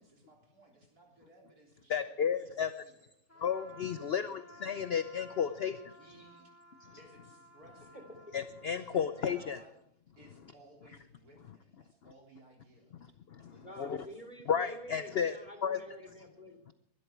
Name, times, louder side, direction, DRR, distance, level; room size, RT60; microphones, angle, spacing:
voice 1, 0.0-3.1 3.9-4.2 5.9-6.5 7.0-8.1 8.9-9.8 10.2-13.1 13.4-14.1 14.9-15.2, right 2 dB, 60° right, 0 dB, 4.1 m, -60 dB
voice 2, 1.9-2.7 3.4-5.8 8.3-9.6 13.8-14.0 14.5-15.4 15.6-15.8, left 7 dB, 60° left, 11 dB, 0.6 m, -32 dB
Trumpet, 3.3-9.7, equal, 10° left, 1.3 m, -57 dB
voice 3, 7.9-8.3 13.6-16.6, equal, 25° left, 4 dB, 2.9 m, -49 dB
22.5 x 12.0 x 4.6 m, 0.72 s
omnidirectional pair, 1.8 m